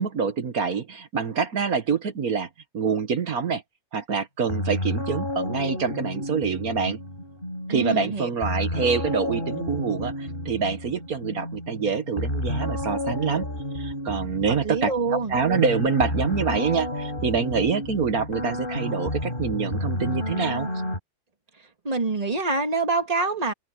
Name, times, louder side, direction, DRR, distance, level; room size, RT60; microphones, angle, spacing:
voice 1, 0.0-2.5 2.7-3.6 3.9-7.0 7.7-13.5 13.7-20.7, right 5 dB, 45° right, 1.5 m, -26 dB
sound 1, 4.5-21.0, left 1 dB, 25° left, 5.7 m, -31 dB
voice 2, 7.7-8.3 14.5-15.4 21.8-23.5, right 3 dB, 15° right, 2.4 m, -26 dB
omnidirectional pair, 2.4 m